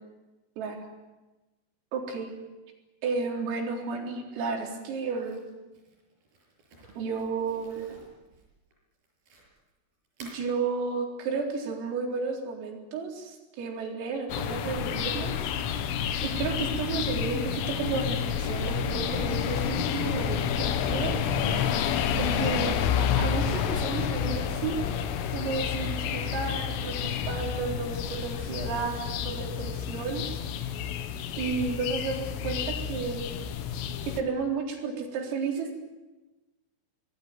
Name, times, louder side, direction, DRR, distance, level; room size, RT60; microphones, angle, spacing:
voice 1, 1.9-2.3 3.0-5.4 7.0-8.0 10.2-15.5 16.2-21.2 22.1-24.8 25.3-30.3 31.4-33.2 34.1-35.8, right 4 dB, 85° right, 1 dB, 6.6 m, -32 dB
Crumpling crinkling, 5.1-9.7 10.1-10.4, right 2 dB, 50° right, 8.3 m, -53 dB
sound 1, 14.3-34.2, left 8 dB, 80° left, 4.0 m, -29 dB
26.5 x 20.0 x 9.4 m, 1.1 s
omnidirectional pair, 5.8 m